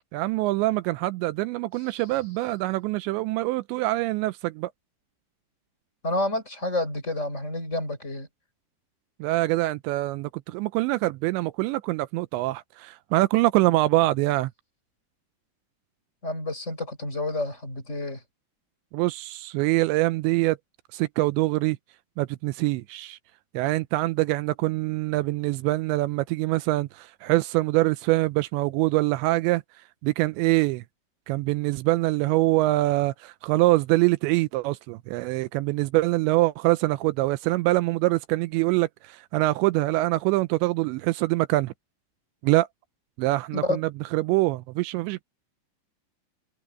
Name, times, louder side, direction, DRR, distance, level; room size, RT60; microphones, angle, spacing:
voice 1, 0.1-4.7 9.2-14.5 18.9-20.6 20.9-21.8 22.2-23.2 23.5-29.6 30.0-30.8 31.3-41.7 42.4-42.7 43.2-45.2, right 19 dB, 85° right, 2.9 m, -24 dB
voice 2, 6.0-8.3 16.2-18.2 43.5-43.8, left 2 dB, 15° left, 5.8 m, -29 dB
omnidirectional pair, 5.2 m